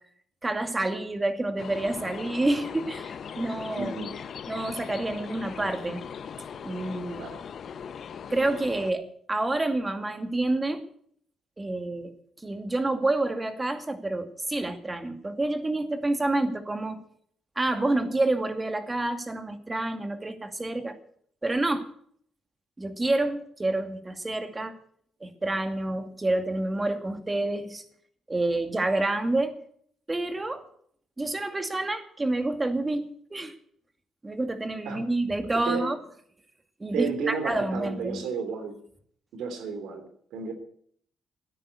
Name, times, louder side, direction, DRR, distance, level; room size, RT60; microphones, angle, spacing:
voice 1, 0.4-3.9 4.5-6.0 6.6-7.2 8.3-10.8 11.6-12.1 12.4-17.0 17.6-21.0 21.4-21.9 22.8-24.7 25.2-27.8 28.3-29.6 30.1-30.6 31.2-33.5 34.2-36.0 36.8-38.2, right 2 dB, 20° right, 7 dB, 2.3 m, -28 dB
sound 1, 1.6-8.9, left 7 dB, 55° left, 0.9 m, -39 dB
voice 2, 3.8-4.2 7.2-7.4 34.8-35.0 35.4-35.9 36.9-38.8 39.3-40.5, right 5 dB, 80° right, 7 dB, 3.2 m, -33 dB
14.0 x 10.0 x 8.4 m, 0.62 s
cardioid pair, 90°, 0 cm